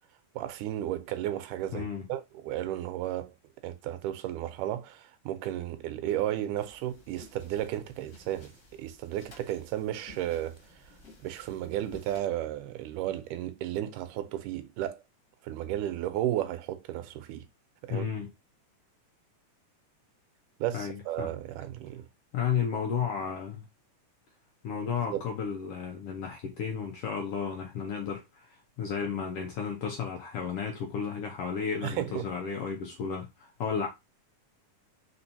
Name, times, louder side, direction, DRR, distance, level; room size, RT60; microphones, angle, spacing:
voice 1, 0.4-3.3 3.6-10.6 11.2-15.0 15.4-17.4 17.8-18.1 20.6-22.1 25.1-25.2 31.8-32.3, right 12 dB, 80° right, 2.1 m, -33 dB
voice 2, 1.7-2.1 17.9-18.3 20.7-21.3 22.3-23.6 24.6-33.9, left 6 dB, 80° left, 1.3 m, -33 dB
sound 1, 6.5-12.2, left 2 dB, 30° left, 1.9 m, -55 dB
4.5 x 4.2 x 2.7 m
omnidirectional pair, 3.8 m